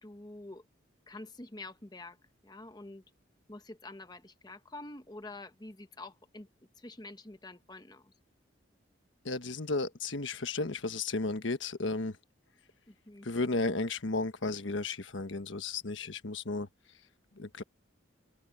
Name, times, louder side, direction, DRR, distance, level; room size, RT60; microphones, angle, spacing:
voice 1, 0.0-0.6 1.1-2.2 2.4-3.0 3.5-6.5 6.8-8.1 12.9-13.3, left 2 dB, 20° left, 1.1 m, -47 dB
voice 2, 9.2-12.2 13.2-16.7 17.3-17.6, left 3 dB, 75° left, 1.3 m, -33 dB
open air
head